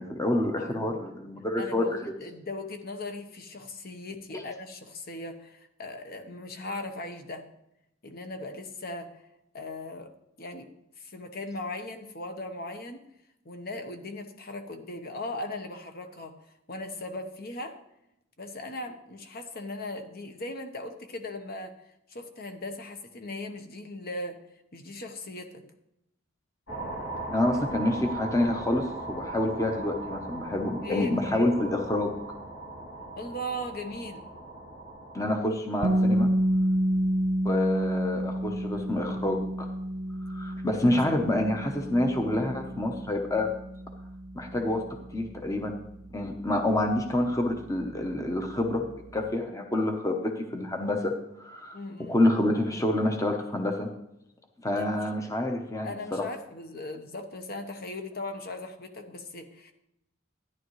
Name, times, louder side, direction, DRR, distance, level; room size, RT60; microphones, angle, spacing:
voice 1, 0.0-1.9 4.3-4.4 27.3-32.1 35.1-36.3 37.4-39.7 40.2-43.5 44.3-44.8 45.1-45.8 46.1-48.9 49.1-53.9 54.6-56.3, left 1 dB, 15° left, 4 dB, 0.9 m, -27 dB
voice 2, 0.6-0.9 1.6-7.5 8.0-9.2 9.5-10.1 10.4-10.7 11.0-13.0 13.4-16.4 16.7-17.8 18.4-21.7 22.1-24.4 24.7-25.7 30.8-31.2 33.2-34.2 51.7-52.2 54.7-54.9 55.8-59.7, left 2 dB, 50° left, 6 dB, 1.1 m, -38 dB
sound 1, 26.7-35.4, right 2 dB, 65° left, 2.7 m, -38 dB
sound 2, 35.8-47.7, equal, 40° right, 0.5 m, -30 dB
13.5 x 10.5 x 3.2 m, 0.82 s
head